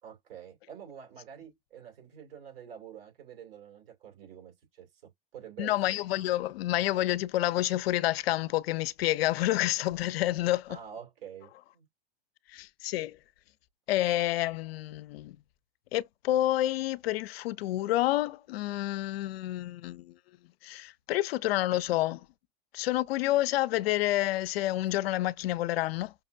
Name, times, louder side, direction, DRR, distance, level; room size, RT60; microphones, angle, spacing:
voice 1, 0.0-5.8 10.7-11.9, right 8 dB, 70° right, 2.7 m, -47 dB
voice 2, 5.6-10.8 12.5-13.2 13.9-15.4 15.9-20.2 20.6-22.3 22.7-26.1, left 15 dB, 75° left, 0.5 m, -29 dB
5.7 x 2.2 x 2.5 m
hypercardioid pair, 120°, 30 cm